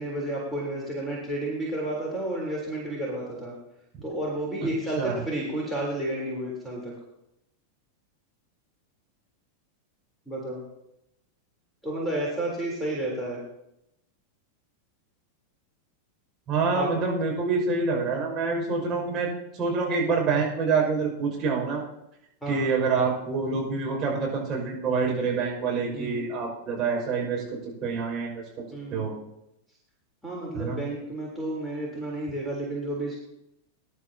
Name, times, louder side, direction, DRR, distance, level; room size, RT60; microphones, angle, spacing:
voice 1, 0.0-3.5 4.0-6.9 10.3-10.6 11.8-13.4 16.7-16.9 22.4-22.7 25.9-26.2 28.7-29.1 30.2-33.2, right 1 dB, ahead, -4 dB, 3.6 m, -31 dB
voice 2, 16.5-21.8 22.5-27.4 27.8-28.4 28.9-29.1 30.5-30.8, right 4 dB, 30° right, -2 dB, 5.9 m, -26 dB
21.5 x 11.0 x 2.9 m, 0.85 s
figure-of-eight pair, 90°, 0 cm